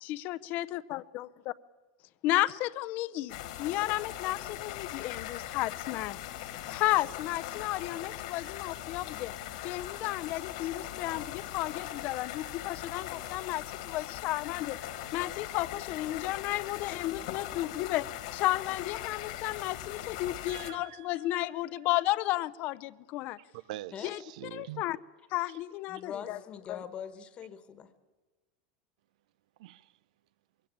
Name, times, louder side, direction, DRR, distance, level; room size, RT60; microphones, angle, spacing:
voice 1, 0.0-1.3 2.2-9.3 9.6-14.8 15.1-23.4 24.0-24.2 24.5-25.0 25.3-26.4 26.7-26.8, left 17 dB, 45° left, 0.6 m, -33 dB
sound 1, 3.3-20.7, left 13 dB, 75° left, 1.9 m, -40 dB
voice 2, 20.5-21.3 23.5-24.8 25.5-25.6 25.9-26.0 29.6-29.9, right 15 dB, 75° right, 0.6 m, -45 dB
voice 3, 25.9-27.9, left 7 dB, 25° left, 1.4 m, -42 dB
22.5 x 16.5 x 8.6 m
supercardioid pair, 150°, 4 cm